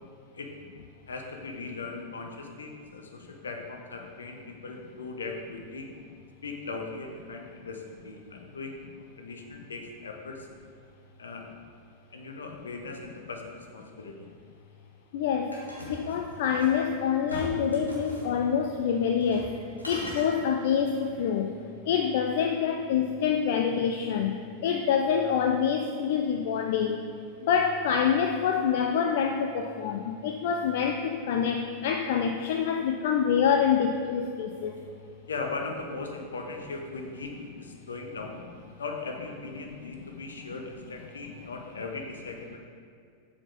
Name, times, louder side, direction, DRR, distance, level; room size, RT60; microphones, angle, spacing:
voice 1, 1.1-5.9 6.4-8.8 9.2-10.5 11.2-11.5 12.1-14.3 35.3-38.4 38.8-42.6, left 3 dB, 70° left, 3 dB, 0.8 m, -39 dB
voice 2, 15.1-15.5 15.9-19.5 19.9-21.6 21.9-27.0 27.4-34.7, left 7 dB, 55° left, 4 dB, 0.4 m, -26 dB
sound 1, 15.5-16.8 17.3-18.3 19.2-19.5 19.8-20.3, equal, 85° left, 1.2 m, -40 dB
7.5 x 4.2 x 4.6 m, 2.3 s
figure-of-eight pair, 90°, 0 cm